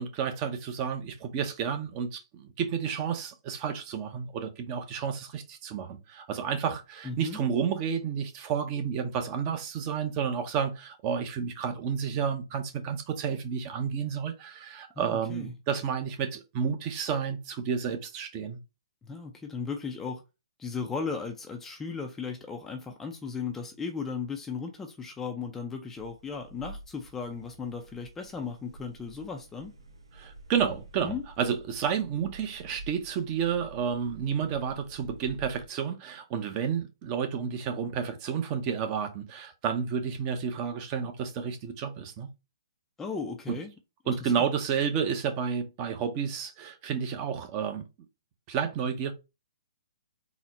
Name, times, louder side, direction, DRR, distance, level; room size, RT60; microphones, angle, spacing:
voice 1, 0.0-18.6 30.1-42.3 43.5-43.6 44.1-47.8 48.5-49.1, right 7 dB, 30° right, 0.6 m, -31 dB
voice 2, 7.0-7.4 15.0-15.5 19.0-20.2 20.6-29.7 31.0-31.2 43.0-43.7 44.0-44.5, left 5 dB, 10° left, 0.4 m, -36 dB
sound 1, 25.9-35.7, right 2 dB, 80° right, 1.2 m, -49 dB
4.1 x 2.1 x 4.0 m
hypercardioid pair, 140°, 3 cm